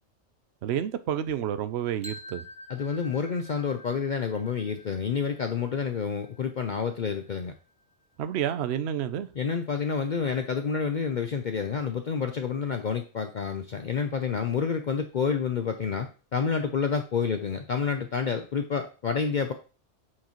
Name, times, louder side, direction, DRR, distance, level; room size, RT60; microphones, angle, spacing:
voice 1, 0.6-2.4 8.2-9.3, right 10 dB, 65° right, 0.9 m, -29 dB
sound 1, 2.0-8.0, left 1 dB, 5° right, 0.9 m, -48 dB
voice 2, 2.7-7.5 9.3-19.5, left 6 dB, 50° left, 0.6 m, -29 dB
8.4 x 4.7 x 3.0 m
omnidirectional pair, 1.2 m